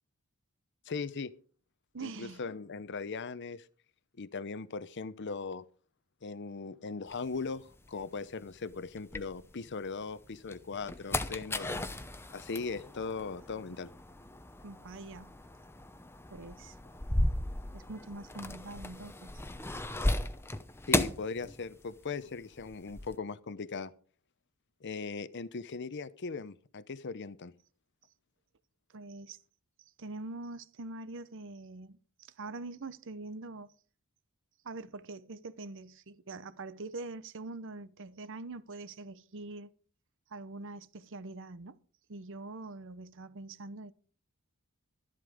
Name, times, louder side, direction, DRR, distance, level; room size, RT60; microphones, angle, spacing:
voice 1, 0.9-1.3 2.0-3.7 4.2-5.6 6.2-11.9 12.3-13.9 20.9-23.9 24.8-27.5, left 4 dB, 55° left, 0.7 m, -39 dB
voice 2, 1.9-2.4 14.6-15.3 16.3-16.8 17.7-19.4 28.9-29.4 30.0-33.7 34.6-39.7 40.3-41.8 42.1-43.9, right 2 dB, 60° right, 0.9 m, -44 dB
sound 1, 7.1-9.9 10.3-22.1 22.3-23.2, left 1 dB, 10° left, 0.8 m, -36 dB
12.5 x 11.0 x 5.0 m
head